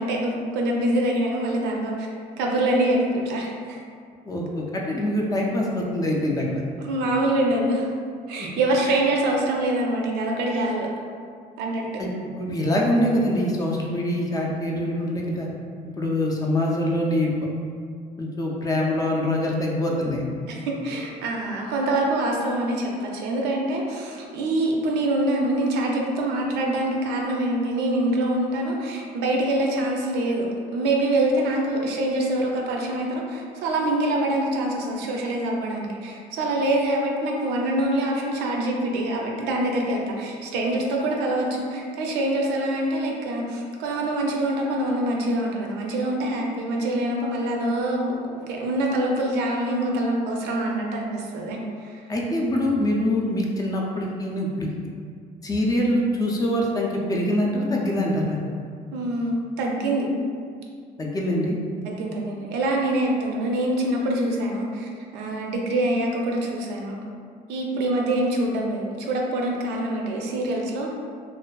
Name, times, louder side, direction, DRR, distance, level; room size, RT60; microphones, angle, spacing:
voice 1, 0.0-2.1 2.4-3.8 6.8-7.9 8.3-10.9 11.6-11.9 20.5-30.5 30.7-52.0 58.9-60.1 61.8-67.0 67.5-70.9, right 1 dB, 85° right, 0 dB, 0.4 m, -25 dB
voice 2, 4.2-6.6 12.0-12.1 12.3-15.5 15.8-17.3 18.2-20.2 52.1-54.7 55.4-58.4 61.0-61.6, left 1 dB, 20° left, -2 dB, 0.4 m, -24 dB
2.4 x 2.3 x 2.2 m, 2.2 s
cardioid pair, 110°, 17 cm